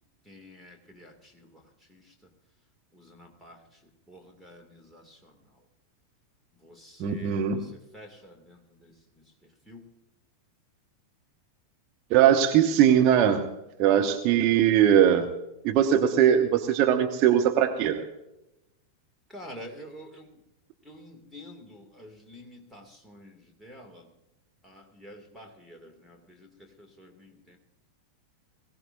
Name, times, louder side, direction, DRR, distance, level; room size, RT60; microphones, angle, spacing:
voice 1, 0.3-1.5 1.9-2.0 2.9-3.6 4.1-5.3 6.6-8.9 9.7-9.8 19.3-20.4 20.8-24.1 24.6-27.6, equal, ahead, 0 dB, 2.5 m, -48 dB
voice 2, 7.0-7.6 12.1-13.4 13.8-15.3 15.6-18.0, right 9 dB, 40° right, 4 dB, 1.1 m, -21 dB
22.0 x 16.5 x 2.7 m, 0.89 s
figure-of-eight pair, 90°, 0 cm